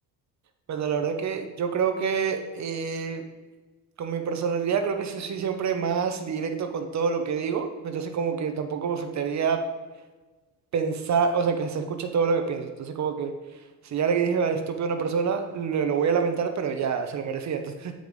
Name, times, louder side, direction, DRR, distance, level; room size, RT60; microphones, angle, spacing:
voice 1, 0.7-3.2 4.0-9.6 10.7-17.9, right 6 dB, 50° right, 6 dB, 0.8 m, -27 dB
7.8 x 5.0 x 5.2 m, 1.3 s
cardioid pair, 105°, 36 cm